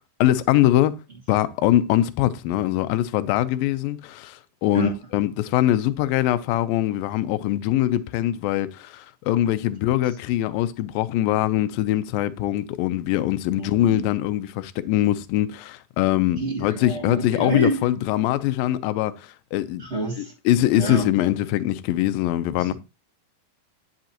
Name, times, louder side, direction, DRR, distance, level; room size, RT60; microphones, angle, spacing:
voice 1, 0.2-1.0 1.3-19.8 20.2-22.7, left 13 dB, 80° left, 2.3 m, -22 dB
voice 2, 13.6-14.1 16.4-17.9 19.8-20.3 20.7-21.1 22.5-22.7, right 1 dB, 25° right, 1.6 m, -28 dB
10.5 x 7.9 x 2.9 m
omnidirectional pair, 4.4 m